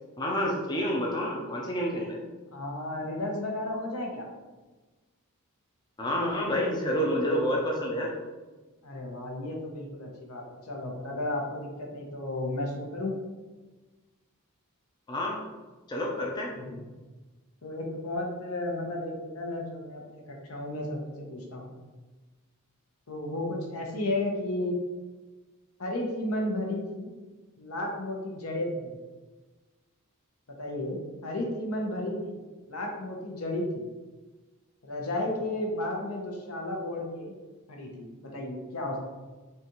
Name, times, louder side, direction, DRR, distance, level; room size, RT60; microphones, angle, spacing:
voice 1, 0.2-2.2 6.0-8.1 15.1-15.4 15.9-16.5, equal, 20° left, -2 dB, 0.5 m, -28 dB
voice 2, 2.5-4.3 8.8-13.2 16.5-16.8 17.6-21.7 23.1-24.8 25.8-27.1 27.6-29.0 30.6-32.4 32.7-33.9 34.8-37.3 37.7-38.1 38.3-39.0, left 1 dB, 75° left, 0 dB, 0.9 m, -33 dB
5.5 x 2.4 x 3.0 m, 1.2 s
head